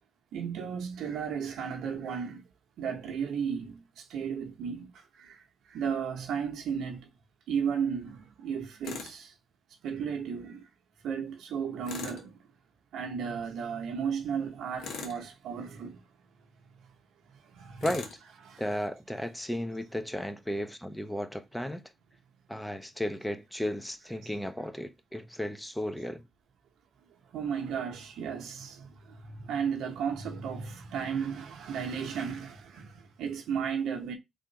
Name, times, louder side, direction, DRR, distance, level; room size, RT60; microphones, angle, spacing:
voice 1, 0.3-2.4 2.8-7.1 7.5-9.3 9.8-10.7 11.0-12.4 12.9-16.0 17.4-17.9 18.4-18.6 27.3-34.2, right 7 dB, 85° right, 0.7 m, -34 dB
Tools, 8.8-9.2 11.8-12.3 14.8-15.3 17.8-18.2, left 5 dB, 80° left, 0.7 m, -40 dB
voice 2, 18.6-21.8 22.5-26.2, equal, 5° left, 0.5 m, -34 dB
3.4 x 2.4 x 2.8 m
cardioid pair, 65°, 0 cm